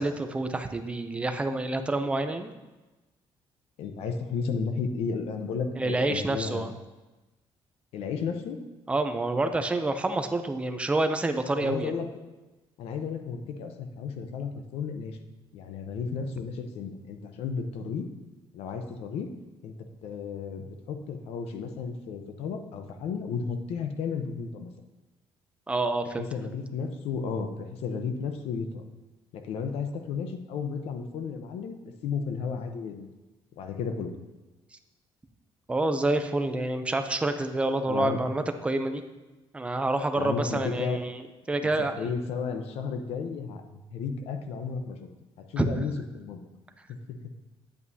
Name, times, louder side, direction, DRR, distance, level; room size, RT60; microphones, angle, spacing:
voice 1, 0.0-2.5 5.8-6.7 8.9-11.9 25.7-26.3 35.7-39.0 39.5-41.2 41.5-42.1 45.6-45.8, right 2 dB, 10° right, 7 dB, 0.5 m, -28 dB
voice 2, 3.8-6.7 7.9-8.6 11.6-12.1 12.8-15.2 15.5-18.1 18.5-19.3 19.6-19.7 20.0-24.7 26.3-28.8 29.3-31.8 32.0-33.1 33.6-34.1 37.9-38.3 40.2-41.0 41.6-45.0 45.4-46.4 46.9-47.3, left 5 dB, 85° left, 6 dB, 0.8 m, -33 dB
9.1 x 8.3 x 2.7 m, 1.1 s
cardioid pair, 160°, 10 cm